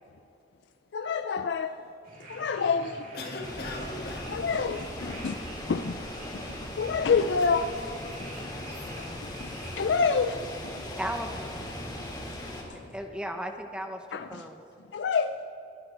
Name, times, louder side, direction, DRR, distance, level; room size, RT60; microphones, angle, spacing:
voice 1, 0.9-1.8 2.3-3.1 4.3-4.9 5.2-5.4 5.7-6.1 6.3-6.4 6.8-7.7 9.0-9.1 9.4-9.5 9.8-10.5 14.1-14.4 14.9-15.5, left 5 dB, 75° left, 9 dB, 0.4 m, -27 dB
sound 1, 2.0-12.2, right 1 dB, 50° right, 3.6 m, -46 dB
voice 2, 3.1-4.4 5.0-5.3 7.2-8.9 14.2-14.4, left 2 dB, 60° left, 1 dB, 2.0 m, -42 dB
sound 2, 3.4-12.6, left 1 dB, 25° left, 2.5 m, -39 dB
voice 3, 11.0-11.5 12.9-14.6, equal, 5° right, 5 dB, 0.8 m, -36 dB
22.0 x 12.5 x 3.4 m, 2.8 s
head